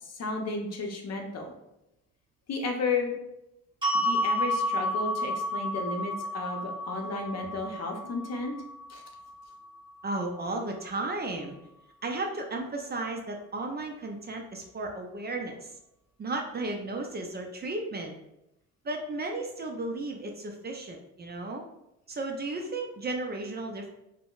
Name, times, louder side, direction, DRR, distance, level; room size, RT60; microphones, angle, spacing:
voice 1, 0.0-1.5 2.5-3.1 4.0-8.5 8.9-9.0, left 3 dB, 55° left, 2 dB, 0.7 m, -33 dB
sound 1, 3.8-10.0, left 1 dB, 15° right, 1.3 m, -31 dB
voice 2, 10.0-11.5 12.0-15.7 16.2-18.2 18.8-21.6 22.1-23.9, right 2 dB, 30° right, 2 dB, 0.4 m, -34 dB
3.6 x 2.1 x 2.4 m, 0.86 s
cardioid pair, 90°, 32 cm